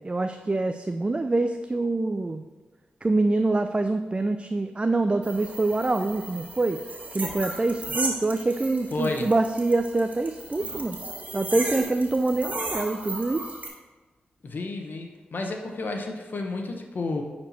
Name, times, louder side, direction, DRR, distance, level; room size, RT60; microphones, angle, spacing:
voice 1, 0.0-2.4 3.0-6.8 7.1-11.0 11.3-13.5, right 2 dB, 30° right, 7 dB, 0.4 m, -25 dB
sound 1, 5.2-13.7, right 2 dB, 45° right, 2.0 m, -36 dB
voice 2, 8.9-9.3 14.4-17.2, left 3 dB, 60° left, 3 dB, 1.1 m, -31 dB
9.8 x 4.4 x 4.4 m, 1.3 s
cardioid pair, 45°, 4 cm